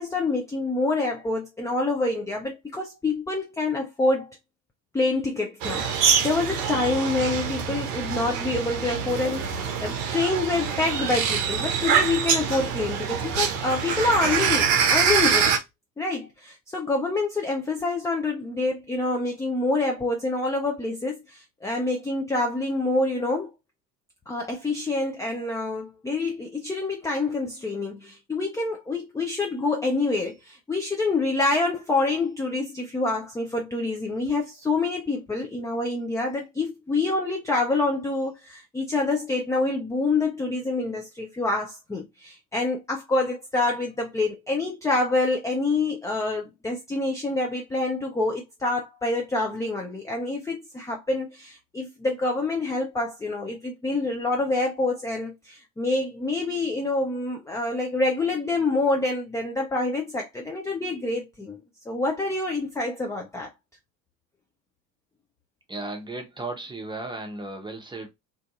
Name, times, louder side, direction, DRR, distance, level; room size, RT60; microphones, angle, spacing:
voice 1, 0.0-4.4 4.9-15.5 16.0-23.5 24.3-61.6 61.9-63.5, left 2 dB, 5° left, 0.3 m, -27 dB
sound 1, 5.6-15.6, right 7 dB, 65° right, 0.7 m, -25 dB
voice 2, 65.7-68.1, right 2 dB, 10° right, 0.7 m, -35 dB
2.6 x 2.6 x 2.3 m
figure-of-eight pair, 60°, 50 cm